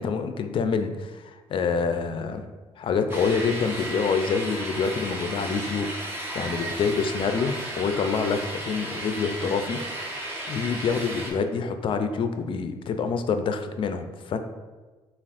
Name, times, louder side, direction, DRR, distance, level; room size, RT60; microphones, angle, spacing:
voice 1, 0.0-2.4 2.8-9.8 10.5-14.4, left 5 dB, 55° left, 8 dB, 0.4 m, -27 dB
sound 1, 3.1-11.3, right 1 dB, 20° right, 1.0 m, -34 dB
6.8 x 2.4 x 2.5 m, 1.3 s
cardioid pair, 85°, 11 cm